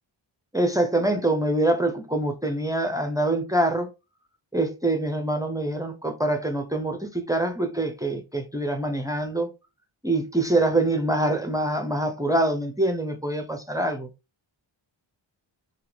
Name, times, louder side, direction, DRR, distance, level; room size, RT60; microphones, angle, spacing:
voice 1, 0.5-3.9 4.5-9.5 10.0-14.1, right 1 dB, 10° right, 0.5 m, -25 dB
2.8 x 2.4 x 3.2 m
cardioid pair, 80°, 47 cm